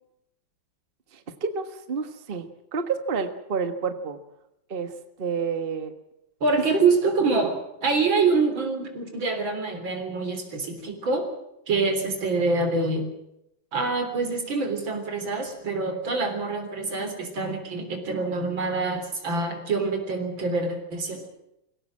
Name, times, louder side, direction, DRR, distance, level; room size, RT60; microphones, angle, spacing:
voice 1, 1.1-4.2 4.7-5.9, right 5 dB, 30° right, 9 dB, 1.5 m, -30 dB
voice 2, 6.4-11.3 11.7-13.1 13.7-21.3, right 3 dB, 80° right, 5 dB, 4.3 m, -25 dB
23.0 x 17.0 x 7.5 m, 0.83 s
omnidirectional pair, 2.1 m